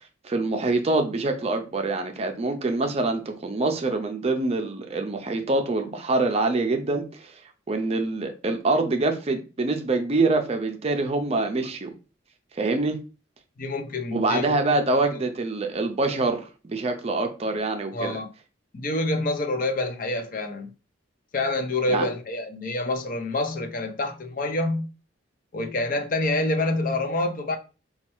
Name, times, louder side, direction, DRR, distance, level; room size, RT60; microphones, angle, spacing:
voice 1, 0.2-7.3 7.7-11.9 12.5-13.0 14.1-18.2 21.9-22.1, right 2 dB, 35° right, 0.4 m, -25 dB
voice 2, 13.6-14.5 17.9-18.3 18.7-20.7 21.3-24.9 25.5-27.6, left 2 dB, 45° left, 0.5 m, -27 dB
4.2 x 2.3 x 2.9 m
head